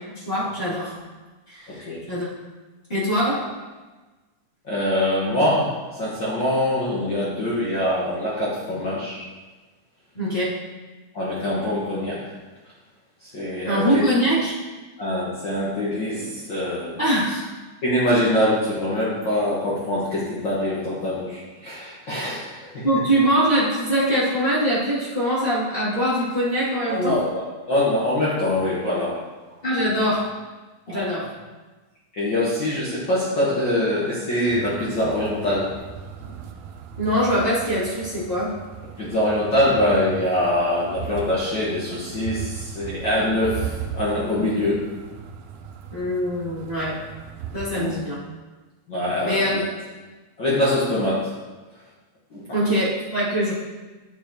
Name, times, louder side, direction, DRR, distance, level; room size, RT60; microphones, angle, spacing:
voice 1, 0.2-0.9 1.5-1.8 2.1-2.3 2.9-3.5 10.1-10.5 13.6-14.5 17.0-17.5 22.8-27.2 29.6-30.3 30.9-31.3 37.0-38.5 44.2-44.5 45.9-47.0 47.5-48.2 49.2-49.7 52.5-53.5, equal, 20° left, -10 dB, 2.4 m, -23 dB
voice 2, 1.7-2.1 4.6-9.3 11.1-12.2 13.2-14.0 15.0-17.0 17.8-22.9 26.9-29.2 30.9-31.0 32.1-35.7 39.0-44.8 47.7-47.9 48.9-49.6 50.4-51.3 52.3-52.8, left 1 dB, 45° left, -8 dB, 1.7 m, -24 dB
sound 1, 34.5-47.7, right 8 dB, 80° right, 1.6 m, -37 dB
8.4 x 8.2 x 3.0 m, 1.2 s
omnidirectional pair, 3.4 m